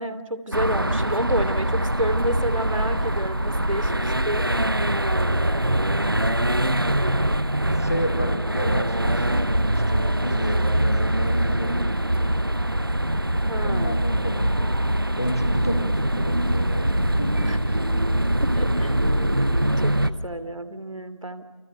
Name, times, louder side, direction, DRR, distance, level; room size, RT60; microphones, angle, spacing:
voice 1, 0.0-4.5 13.5-14.0 17.4-17.6 18.4-18.9 19.8-21.4, right 1 dB, 90° right, 11 dB, 2.8 m, -29 dB
sound 1, 0.5-20.1, right 1 dB, 45° right, 0.9 m, -23 dB
voice 2, 7.7-9.4 9.9-11.8 13.6-14.6 15.2-17.9, equal, 30° left, 8 dB, 1.6 m, -31 dB
30.0 x 25.5 x 6.8 m, 1.2 s
figure-of-eight pair, 180°, 16 cm